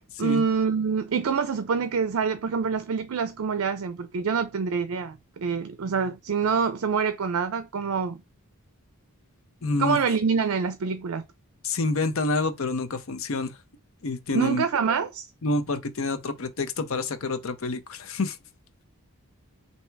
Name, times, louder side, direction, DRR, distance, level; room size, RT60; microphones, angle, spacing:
voice 1, 0.2-8.2 9.8-11.2 14.3-15.3, right 5 dB, 65° right, 0.4 m, -26 dB
voice 2, 9.6-10.0 11.6-13.5 14.0-14.6 15.4-18.4, left 3 dB, 65° left, 0.7 m, -28 dB
3.4 x 2.8 x 4.5 m
head